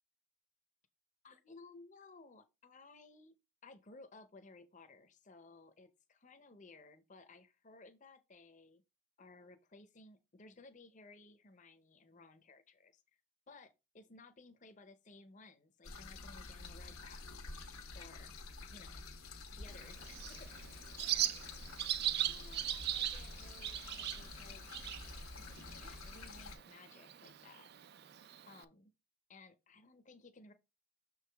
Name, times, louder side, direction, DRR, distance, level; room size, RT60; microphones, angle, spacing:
voice 1, 1.2-3.3 3.6-8.8 9.2-13.0 13.5-17.2 17.9-18.3 18.7-19.0 19.5-21.5 22.0-24.7 25.4-27.7 28.4-28.9 29.3-30.5, left 3 dB, 35° left, 0.7 m, -58 dB
sound 1, 15.8-26.6, left 3 dB, 85° left, 1.1 m, -49 dB
Bird, 19.7-28.6, right 12 dB, 50° right, 0.4 m, -40 dB
6.5 x 4.7 x 3.4 m
head